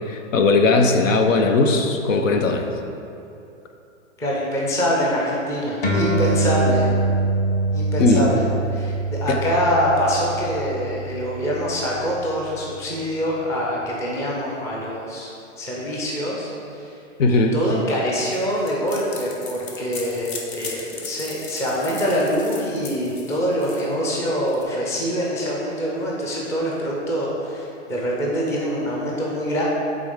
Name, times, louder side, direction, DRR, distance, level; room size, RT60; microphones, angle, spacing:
voice 1, 0.0-2.7 8.0-8.3 9.3-9.4 17.2-17.6, left 3 dB, 85° left, 5 dB, 0.8 m, -18 dB
voice 2, 4.2-6.8 7.7-8.5 8.7-15.3 15.6-16.5 16.8-16.9 17.3-29.6, equal, 10° left, -4 dB, 0.5 m, -24 dB
sound 1, 5.8-12.7, right 2 dB, 25° left, 0.9 m, -24 dB
sound 2, 18.2-24.6, left 4 dB, 55° left, 1.1 m, -37 dB
8.3 x 3.8 x 3.7 m, 2.7 s
hypercardioid pair, 140°, 38 cm